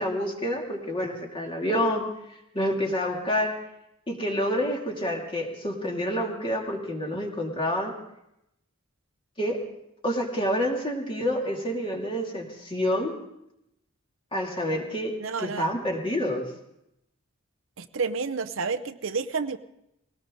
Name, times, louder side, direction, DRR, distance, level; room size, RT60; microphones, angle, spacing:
voice 1, 0.0-3.5 4.1-7.9 9.4-9.6 10.0-13.2 14.3-16.5, equal, 25° left, 0 dB, 2.6 m, -28 dB
voice 2, 15.2-15.7 17.8-19.6, right 4 dB, 65° right, 8 dB, 0.7 m, -30 dB
20.5 x 18.0 x 3.8 m, 0.83 s
head